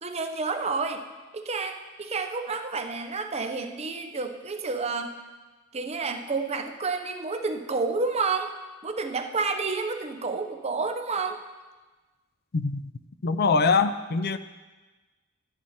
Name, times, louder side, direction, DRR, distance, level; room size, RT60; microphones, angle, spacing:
voice 1, 0.0-1.0 1.3-5.1 5.7-8.5 8.8-11.4, right 4 dB, 30° right, 6 dB, 0.8 m, -30 dB
voice 2, 12.5-12.9 13.2-14.4, left 4 dB, 50° left, 11 dB, 0.5 m, -23 dB
12.0 x 10.5 x 4.3 m, 1.2 s
head